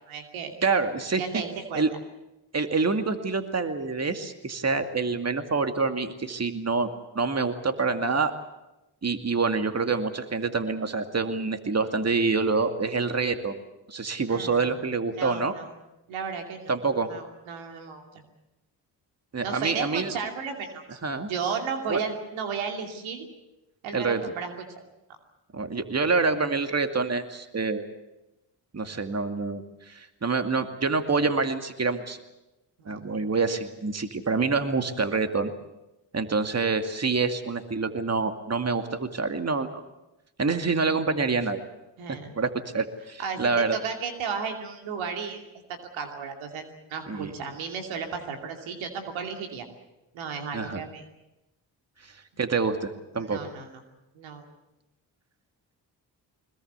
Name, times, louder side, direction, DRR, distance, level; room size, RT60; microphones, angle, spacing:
voice 1, 0.1-0.5 1.2-1.8 14.3-14.7 15.1-15.7 16.1-16.7 17.1-18.0 19.4-21.0 21.3-23.3 23.8-24.5 32.8-33.2 42.0-42.4 43.2-45.4 45.7-46.6 46.9-49.6 50.1-51.0 52.5-52.6 53.2-53.7 54.1-54.4, right 6 dB, 90° right, 4 dB, 2.8 m, -34 dB
voice 2, 0.6-1.2 1.7-1.9 2.5-8.3 9.0-13.6 13.9-15.5 16.7-17.1 19.3-20.1 21.0-21.3 21.9-22.0 23.9-24.2 25.5-27.9 28.7-32.2 32.9-35.5 36.1-39.8 40.4-41.6 42.4-43.8 47.1-47.3 50.5-50.8 52.4-53.4, right 4 dB, 35° right, 7 dB, 2.3 m, -26 dB
22.0 x 21.0 x 8.2 m, 0.97 s
supercardioid pair, 50°, 47 cm